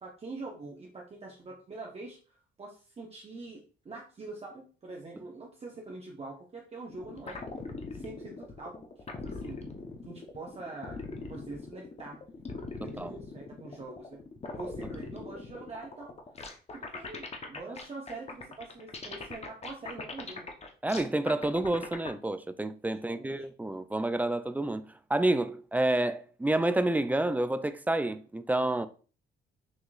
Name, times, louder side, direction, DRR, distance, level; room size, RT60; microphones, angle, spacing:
voice 1, 0.0-7.4 7.9-8.8 9.2-9.6 10.1-12.2 12.8-14.2 14.6-16.1 16.7-20.5 22.9-23.5, right 3 dB, 30° right, 0.9 m, -44 dB
sound 1, 6.9-22.1, left 3 dB, 30° left, 0.8 m, -41 dB
voice 2, 20.8-28.9, right 2 dB, 10° right, 0.3 m, -29 dB
6.2 x 2.9 x 2.4 m
cardioid pair, 90°, 20 cm